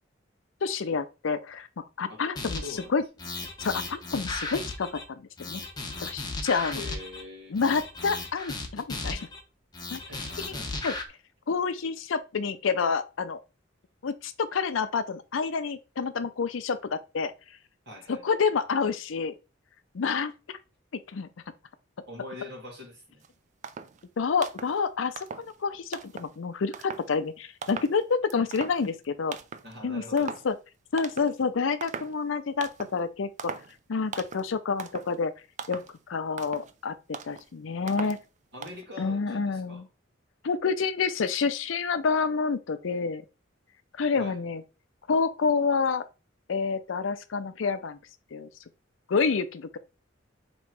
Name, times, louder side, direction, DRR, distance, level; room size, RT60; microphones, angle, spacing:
voice 1, 0.6-2.6 2.9-3.0 3.6-5.6 6.0-6.8 7.5-9.3 9.9-10.0 10.5-10.6 10.8-10.9 11.5-13.4 14.0-17.3 18.1-19.3 19.9-20.3 21.1-21.3 24.2-29.4 29.8-30.6 30.9-33.5 33.9-35.3 35.7-37.0 37.2-38.2 39.0-39.9 40.4-43.3 44.0-44.6 45.1-46.0 46.5-48.0 48.3-48.5 49.1-49.8, left 5 dB, 80° left, 0.5 m, -28 dB
voice 2, 2.1-2.9 6.7-7.6 9.9-11.0 17.9-18.2 22.1-23.2 29.6-30.3 38.0-38.1 38.5-39.8 44.2-44.4, left 2 dB, 60° right, 2.0 m, -44 dB
sound 1, 2.4-2.8 3.2-5.0 5.4-7.2 7.6-9.4 9.7-11.0, left 3 dB, 20° left, 0.8 m, -35 dB
sound 2, 23.2-23.3 23.6-24.0 24.4-24.8 25.2-25.6 25.9-26.4 26.7-27.2 27.6-28.0 28.3-29.1 29.3-29.7 30.2-30.5 31.0-31.4 31.8-32.2 32.6-33.0 33.4-33.8 34.1-34.5 34.8-35.2 35.6-36.0 36.3-36.7 37.1-37.4 37.9-38.3 38.6-38.8, right 6 dB, 40° right, 0.4 m, -40 dB
3.6 x 3.1 x 4.6 m
head